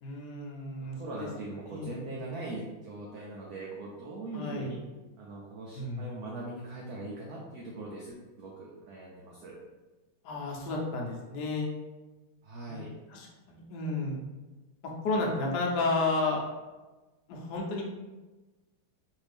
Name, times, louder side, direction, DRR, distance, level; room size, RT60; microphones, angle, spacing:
voice 1, 0.0-1.3 1.7-2.1 4.3-4.8 5.7-6.2 10.2-11.7 12.7-14.2 14.8-16.4 17.3-17.8, left 2 dB, 65° left, -1 dB, 1.1 m, -32 dB
voice 2, 0.8-4.8 5.2-9.6 12.4-12.9, right 2 dB, 85° right, -3 dB, 0.8 m, -41 dB
3.3 x 2.7 x 3.3 m, 1.2 s
omnidirectional pair, 2.3 m